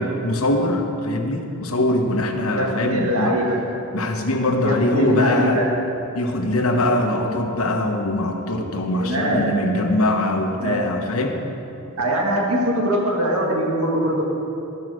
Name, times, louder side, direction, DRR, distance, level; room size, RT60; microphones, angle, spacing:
voice 1, 0.0-3.4 3.9-5.6 6.1-11.4, left 1 dB, 70° left, 3 dB, 1.1 m, -22 dB
voice 2, 2.5-3.6 4.6-5.7 9.0-9.6 10.6-10.9 12.0-14.2, equal, 75° right, -1 dB, 1.8 m, -22 dB
13.0 x 5.6 x 6.3 m, 2.9 s
head